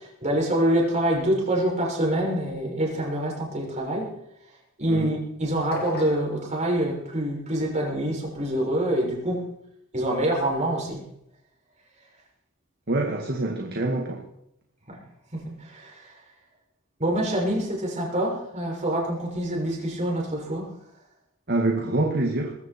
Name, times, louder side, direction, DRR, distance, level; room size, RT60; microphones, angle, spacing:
voice 1, 0.0-4.1 4.8-9.4 9.9-11.0 14.9-15.0 15.3-16.2 17.0-20.7, right 1 dB, 35° right, 6.4 m, -26 dB
sound 1, 5.7-6.3, left 2 dB, 50° left, 3.0 m, -36 dB
voice 2, 12.9-14.2 21.5-22.6, right 2 dB, 50° right, 2.0 m, -25 dB
21.0 x 15.0 x 4.5 m
head